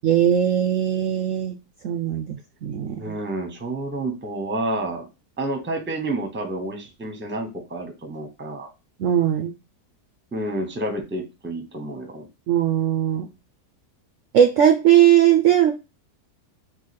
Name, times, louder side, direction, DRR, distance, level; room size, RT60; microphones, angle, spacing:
voice 1, 0.0-1.6 1.8-2.9 9.0-9.5 12.5-13.3 14.3-15.7, right 10 dB, 70° right, 6 dB, 0.8 m, -19 dB
voice 2, 3.0-5.1 5.4-8.7 10.3-12.3, right 1 dB, 10° right, 5 dB, 0.7 m, -29 dB
3.9 x 2.7 x 4.0 m, 0.27 s
omnidirectional pair, 1.8 m